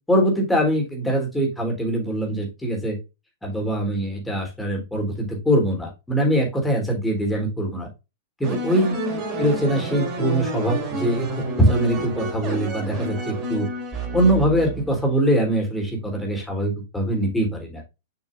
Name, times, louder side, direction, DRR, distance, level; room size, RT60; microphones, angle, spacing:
voice 1, 0.1-3.0 3.4-7.9 8.4-9.0 9.4-11.3 11.6-13.7 14.1-17.8, right 1 dB, 5° left, 0 dB, 3.5 m, -22 dB
sound 1, 8.4-15.1, right 1 dB, 30° right, 4.0 m, -29 dB
7.1 x 6.2 x 2.6 m, 0.27 s
figure-of-eight pair, 105°, 0 cm